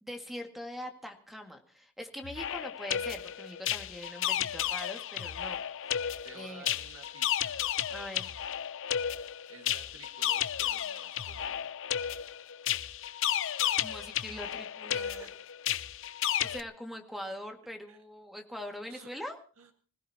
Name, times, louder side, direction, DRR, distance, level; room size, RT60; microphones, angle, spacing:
voice 1, 0.0-6.7 7.9-8.4 13.8-15.3 16.4-19.4, equal, ahead, 4 dB, 2.0 m, -43 dB
sound 1, 2.2-16.6, left 10 dB, 65° left, 0.7 m, -33 dB
voice 2, 6.2-7.6 9.5-11.7 14.9-15.3 17.9-18.0 18.9-19.1 19.6-19.7, right 5 dB, 80° right, 4 dB, 1.8 m, -52 dB
26.0 x 16.5 x 2.9 m, 0.40 s
head